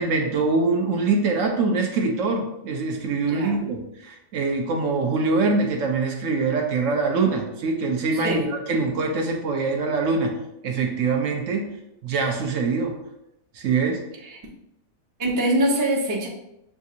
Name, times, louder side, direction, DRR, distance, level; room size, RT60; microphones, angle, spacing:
voice 1, 0.0-10.3 10.6-11.7 12.0-12.9 13.5-14.0, right 4 dB, 65° right, 3 dB, 0.9 m, -24 dB
voice 2, 3.3-3.6 8.1-8.5 14.2-14.4 15.2-16.3, right 1 dB, 25° right, -2 dB, 0.4 m, -24 dB
6.8 x 2.5 x 2.7 m, 0.83 s
omnidirectional pair, 1.5 m